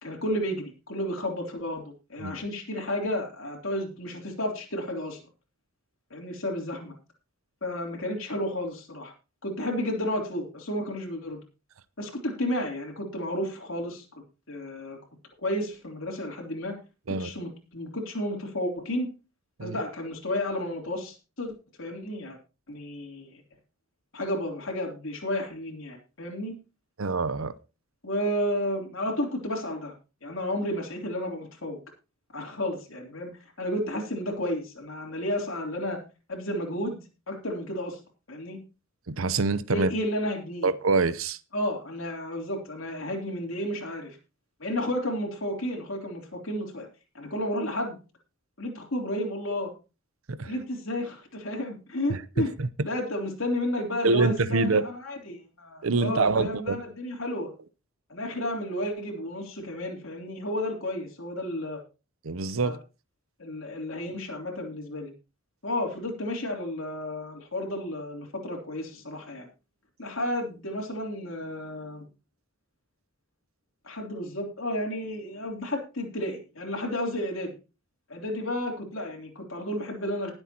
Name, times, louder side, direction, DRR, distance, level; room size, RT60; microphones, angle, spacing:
voice 1, 0.0-5.2 6.1-6.9 7.6-9.1 9.4-11.4 12.0-14.0 14.5-15.0 15.4-16.8 17.1-19.1 19.6-21.5 21.8-22.4 22.7-23.3 24.1-26.5 28.0-29.9 30.2-31.8 32.3-33.3 33.6-36.0 36.3-37.0 37.3-38.0 38.3-38.6 39.7-40.7 41.5-44.2 44.6-46.9 47.1-48.0 48.6-49.7 50.4-52.6 52.8-57.5 58.1-61.8 62.6-62.8 63.4-65.1 65.6-69.5 70.0-72.1 73.8-77.5 78.1-80.3, left 1 dB, 75° left, 3.3 m, -32 dB
voice 2, 27.0-27.5 39.1-39.9 40.6-41.4 50.3-50.5 52.1-52.2 52.6-52.7 54.0-54.8 55.8-56.8 62.2-62.8, right 3 dB, 90° right, 0.8 m, -25 dB
20.0 x 7.9 x 3.0 m
head